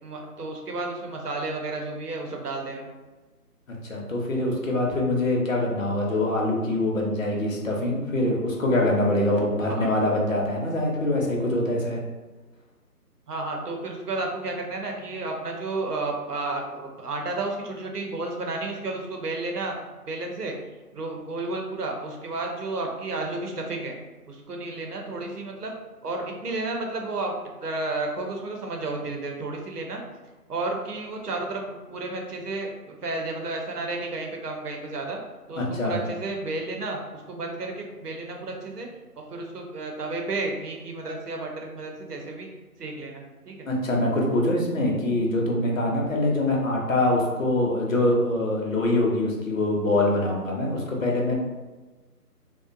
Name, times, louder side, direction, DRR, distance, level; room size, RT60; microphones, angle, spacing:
voice 1, 0.0-2.9 9.7-9.9 13.3-19.8 20.1-20.5 20.9-23.9 24.3-25.7 26.0-27.3 27.6-30.0 30.5-35.2 35.5-38.9 39.3-42.5 42.8-43.7, right 2 dB, 75° right, 1 dB, 0.7 m, -32 dB
voice 2, 3.8-12.0 35.6-36.0 43.7-51.3, left 1 dB, 55° left, -2 dB, 0.7 m, -24 dB
2.4 x 2.1 x 2.5 m, 1.2 s
figure-of-eight pair, 155°, 47 cm